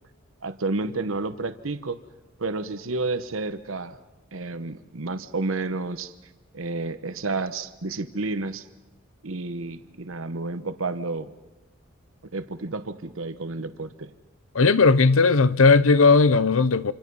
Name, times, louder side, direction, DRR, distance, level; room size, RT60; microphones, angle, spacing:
voice 1, 0.4-2.0 2.4-4.0 4.3-6.1 6.5-8.7 9.2-11.3 12.3-14.1, right 3 dB, 75° right, 1.1 m, -30 dB
voice 2, 14.5-16.9, left 4 dB, 80° left, 0.8 m, -17 dB
27.0 x 27.0 x 5.5 m
head